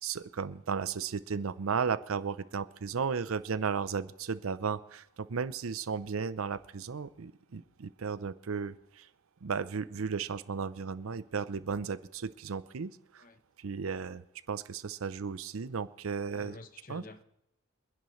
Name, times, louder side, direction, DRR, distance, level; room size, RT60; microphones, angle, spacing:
voice 1, 0.0-9.1 9.4-13.2 13.6-14.2 14.5-16.6 16.9-17.0, right 5 dB, 75° right, 0.6 m, -35 dB
voice 2, 16.3-17.2, left 2 dB, 40° left, 0.8 m, -48 dB
26.0 x 10.5 x 3.2 m
head